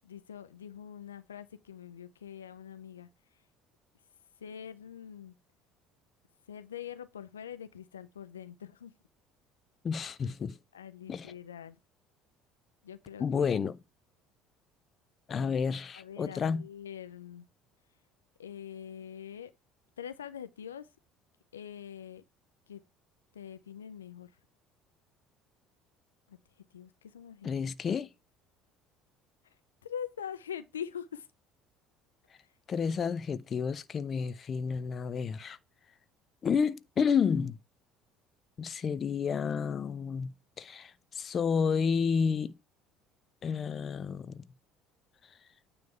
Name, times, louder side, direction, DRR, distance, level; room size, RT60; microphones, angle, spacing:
voice 1, 0.0-3.4 4.4-5.3 6.5-8.9 10.7-11.8 12.8-13.5 16.0-17.5 18.4-19.5 20.0-20.9 21.5-22.2 22.7-22.8 23.3-24.3 26.3-26.4 26.7-27.5 29.4-29.5 29.8-31.3 32.4-32.5, left 8 dB, 90° left, 0.4 m, -44 dB
voice 2, 9.8-10.6 11.1-11.3 13.2-13.8 15.3-16.6 27.4-28.1 32.7-35.6 36.4-37.6 38.6-42.5 43.4-44.4, left 6 dB, 40° left, 0.7 m, -30 dB
9.4 x 3.4 x 5.6 m
hypercardioid pair, 65°, 0 cm